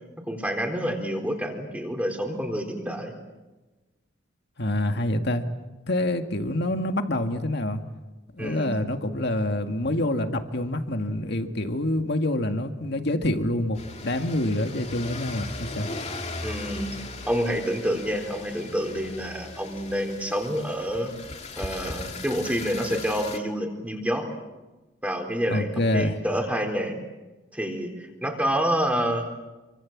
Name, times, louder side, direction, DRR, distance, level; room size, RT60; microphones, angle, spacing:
voice 1, 0.3-3.1 8.4-8.7 16.4-16.9 17.3-21.1 21.6-24.3 25.0-27.0 27.5-29.2, equal, 10° right, 3 dB, 4.1 m, -28 dB
voice 2, 4.6-5.5 5.9-7.8 8.3-13.8 14.0-15.9 25.5-26.2, left 1 dB, 60° left, 6 dB, 2.1 m, -26 dB
sound 1, 13.7-23.4, left 3 dB, 35° left, 2.3 m, -38 dB
28.0 x 25.0 x 7.5 m, 1.1 s
head